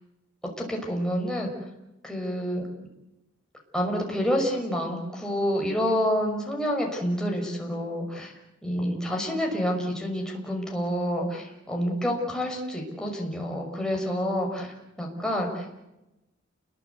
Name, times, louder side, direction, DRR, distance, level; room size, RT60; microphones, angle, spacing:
voice 1, 0.6-1.5 2.0-2.7 3.7-8.3 8.6-14.7 15.0-15.8, equal, 5° left, 0 dB, 5.9 m, -28 dB
29.5 x 22.0 x 8.4 m, 0.95 s
head